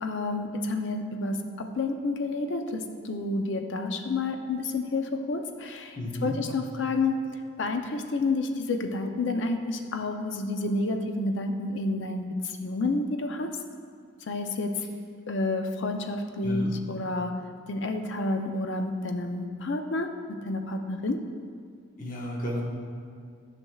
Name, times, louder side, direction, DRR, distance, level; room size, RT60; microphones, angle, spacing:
voice 1, 0.0-7.2 7.6-13.5 14.3-14.7 15.3-17.4 17.7-21.2, left 2 dB, 60° left, 5 dB, 0.5 m, -30 dB
voice 2, 5.9-6.3 16.4-16.7 22.0-22.6, left 1 dB, 40° left, -2 dB, 1.1 m, -32 dB
11.0 x 6.0 x 2.3 m, 2.2 s
head